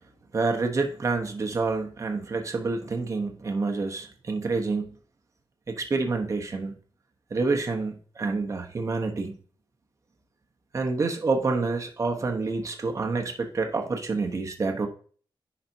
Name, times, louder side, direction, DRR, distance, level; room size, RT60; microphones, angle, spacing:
voice 1, 0.3-4.9 5.7-6.7 7.3-9.3 10.7-14.9, right 3 dB, 35° right, 1.0 m, -28 dB
10.5 x 4.2 x 2.7 m
wide cardioid pair, 145°, 9 cm